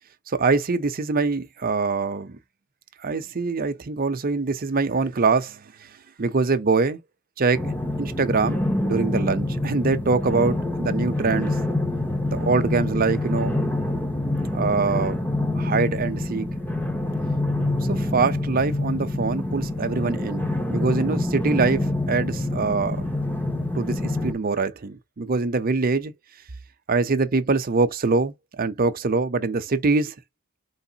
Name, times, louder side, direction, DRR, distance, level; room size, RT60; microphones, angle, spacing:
voice 1, 0.3-2.4 3.0-5.9 6.2-7.0 7.4-11.6 12.3-13.6 14.5-15.3 15.6-16.5 17.5-23.0 23.7-26.1 26.9-30.1, right 4 dB, 45° right, 0.6 m, -24 dB
sound 1, 7.5-24.3, left 2 dB, 10° left, 0.7 m, -26 dB
4.7 x 3.5 x 2.8 m
head